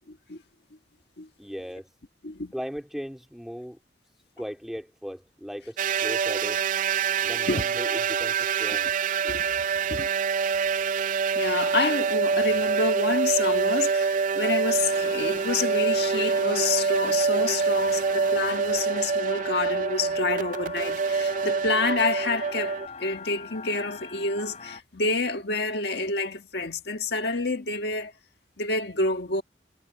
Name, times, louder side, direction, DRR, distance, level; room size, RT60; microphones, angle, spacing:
voice 1, 0.1-0.4 1.2-1.3 2.2-2.5 7.5-7.6 9.2-9.6 9.8-10.1 11.3-28.1 28.6-29.4, left 3 dB, 65° left, 1.6 m, -28 dB
voice 2, 1.4-1.9 2.5-3.8 4.4-6.6 7.2-8.9, equal, ahead, 3.0 m, -37 dB
sound 1, 5.8-22.9, right 5 dB, 45° right, 0.4 m, -26 dB
sound 2, 14.7-24.8, left 5 dB, 40° left, 3.4 m, -42 dB
head